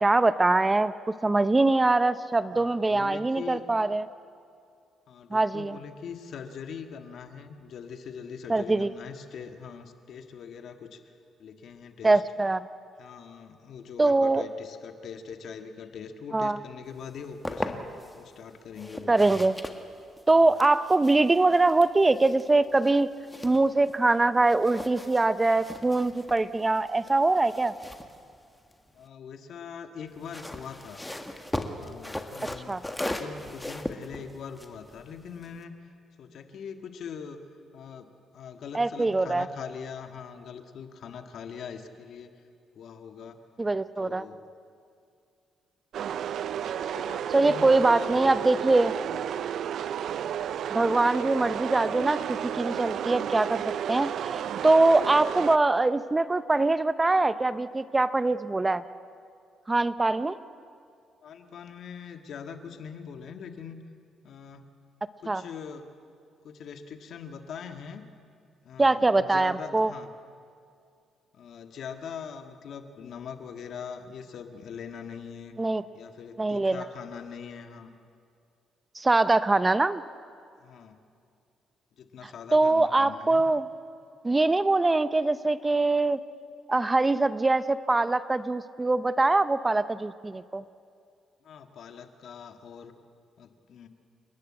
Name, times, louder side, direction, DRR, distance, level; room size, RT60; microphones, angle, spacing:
voice 1, 0.0-0.9 1.2-4.1 5.3-5.8 8.5-8.9 12.0-12.6 14.0-14.5 16.3-16.6 19.1-19.6 20.3-23.1 23.4-27.7 32.7-32.8 38.7-39.5 43.6-44.3 47.3-48.9 50.7-58.8 59.7-60.4 65.3-65.4 68.8-69.9 75.6-75.8 76.4-76.8 78.9-80.0 82.2-83.7 84.2-86.2 86.7-90.6, right 2 dB, 20° right, 14 dB, 0.6 m, -23 dB
voice 2, 2.5-3.6 5.1-11.0 11.4-12.2 13.0-17.8 18.1-19.4 28.9-31.0 31.8-35.7 36.2-37.4 37.7-38.1 38.3-42.3 42.7-43.4 44.0-44.4 46.9-48.4 61.2-63.8 64.2-64.6 65.2-65.8 66.4-68.0 68.6-70.1 71.4-75.5 75.9-77.9 80.6-80.9 82.0-83.4 91.4-92.9 93.4-93.9, left 6 dB, 65° left, 7 dB, 1.7 m, -42 dB
sound 1, 17.0-18.2 18.7-24.1 24.4-29.1 30.1-35.6, left 1 dB, 10° left, 1.7 m, -39 dB
sound 2, 45.9-55.6, right 9 dB, 70° right, 0.5 m, -32 dB
29.5 x 11.5 x 8.8 m, 2.3 s
cardioid pair, 90°, 0 cm